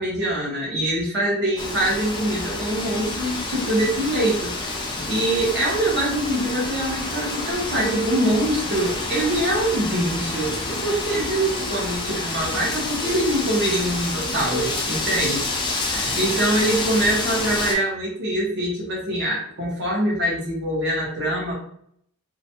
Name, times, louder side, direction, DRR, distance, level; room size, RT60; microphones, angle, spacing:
voice 1, 0.0-15.4 15.9-21.5, right 1 dB, 50° right, -2 dB, 0.7 m, -24 dB
Wind, 1.6-17.7, left 2 dB, 20° left, 0.3 m, -28 dB
2.3 x 2.0 x 2.8 m, 0.68 s
head